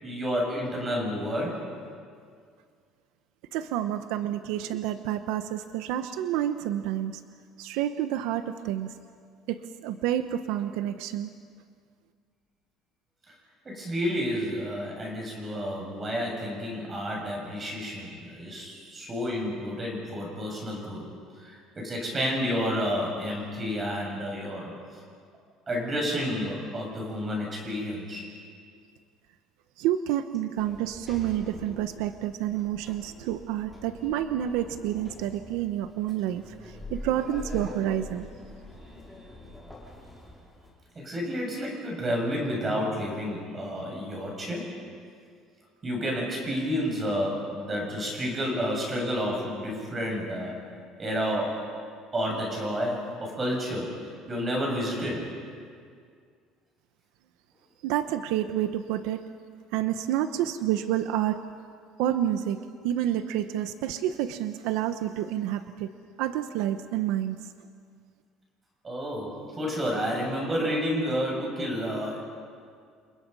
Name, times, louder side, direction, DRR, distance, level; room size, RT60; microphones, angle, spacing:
voice 1, 0.0-1.6 13.7-21.1 21.4-24.7 25.7-28.3 41.0-44.7 45.8-50.6 51.0-51.6 52.1-54.0 54.3-55.3 68.8-72.2, equal, 20° right, -1 dB, 7.0 m, -30 dB
voice 2, 3.5-7.2 7.6-8.9 9.5-11.3 29.8-38.3 57.8-59.2 59.7-61.4 62.0-62.6 62.8-65.9 66.2-67.4, right 11 dB, 85° right, 9 dB, 1.0 m, -29 dB
Sliding door, 30.6-40.7, left 1 dB, ahead, 5.2 m, -44 dB
29.5 x 27.5 x 5.5 m, 2.1 s
cardioid pair, 165°, 0 cm